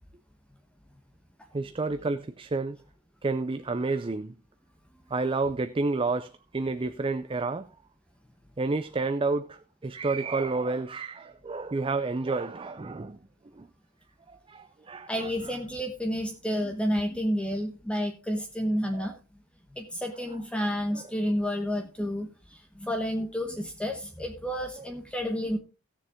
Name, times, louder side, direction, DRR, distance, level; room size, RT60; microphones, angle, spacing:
voice 1, 1.5-2.8 3.2-4.3 5.1-7.7 8.6-13.2 13.6-13.7 14.3-15.3 18.9-19.1 20.9-21.0 24.8-24.9, right 3 dB, 25° right, 0.4 m, -30 dB
voice 2, 15.1-19.1 19.7-25.6, equal, 5° left, 1.0 m, -30 dB
16.5 x 6.9 x 3.6 m
head